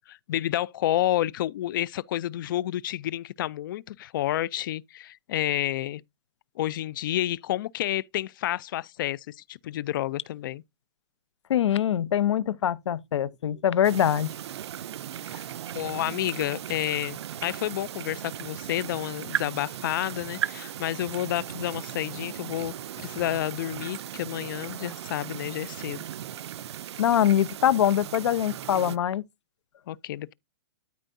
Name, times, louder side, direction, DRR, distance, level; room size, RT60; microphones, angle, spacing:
voice 1, 0.1-6.0 6.6-10.6 15.3-15.4 15.7-26.0 29.9-30.3, left 13 dB, 45° left, 0.4 m, -30 dB
voice 2, 11.5-14.3 27.0-29.2, left 10 dB, 80° left, 0.7 m, -23 dB
sound 1, 13.8-29.0, right 11 dB, 70° right, 0.5 m, -37 dB
13.0 x 4.5 x 2.6 m
hypercardioid pair, 160°, 15 cm